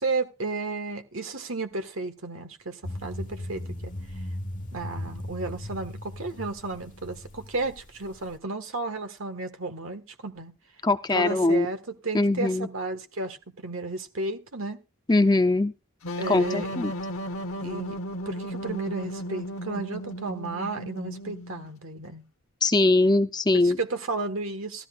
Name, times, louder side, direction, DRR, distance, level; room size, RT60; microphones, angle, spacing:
voice 1, 0.0-3.9 4.7-10.5 11.1-13.4 13.6-14.8 16.2-16.8 17.6-18.0 18.2-22.2 23.5-24.9, right 3 dB, 70° right, 8 dB, 1.6 m, -33 dB
sound 1, 2.8-8.3, left 1 dB, 35° left, 1.2 m, -37 dB
voice 2, 10.8-11.7 12.1-12.7 15.1-15.7 16.3-16.9 22.6-23.8, left 2 dB, 20° left, 9 dB, 0.5 m, -21 dB
sound 2, 16.0-21.7, equal, 80° left, 1.1 m, -35 dB
15.5 x 13.0 x 2.4 m, 0.30 s
head